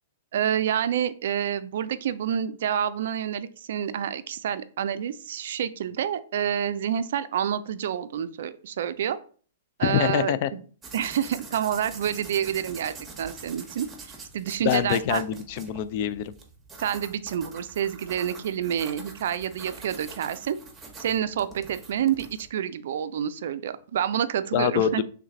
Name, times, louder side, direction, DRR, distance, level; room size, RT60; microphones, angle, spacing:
voice 1, 0.3-9.2 9.8-10.6 10.9-13.9 14.3-15.2 16.8-20.6 21.0-25.0, right 9 dB, 65° right, 13 dB, 0.3 m, -28 dB
voice 2, 9.8-10.5 14.7-16.3 24.5-25.0, left 10 dB, 50° left, 14 dB, 0.3 m, -25 dB
sound 1, 10.8-22.5, right 4 dB, 15° right, 1.0 m, -45 dB
3.2 x 3.1 x 3.7 m, 0.42 s
hypercardioid pair, 120°, 0 cm